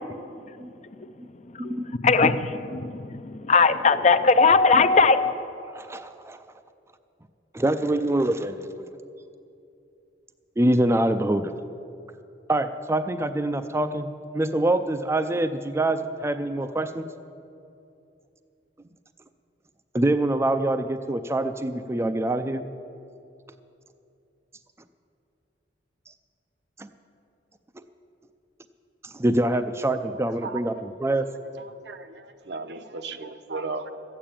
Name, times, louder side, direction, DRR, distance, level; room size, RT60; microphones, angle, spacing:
voice 1, 1.5-2.4 2.7-5.4, left 4 dB, 40° left, 10 dB, 0.5 m, -19 dB
voice 2, 5.7-6.4 7.5-8.9 10.6-11.5 12.5-14.1 14.3-17.0 19.9-22.6 26.8-26.9 27.8-27.9 29.0-31.3, right 1 dB, 15° right, 9 dB, 0.4 m, -25 dB
voice 3, 31.6-33.9, right 4 dB, 65° right, 8 dB, 0.8 m, -35 dB
13.5 x 8.7 x 8.9 m, 2.6 s
head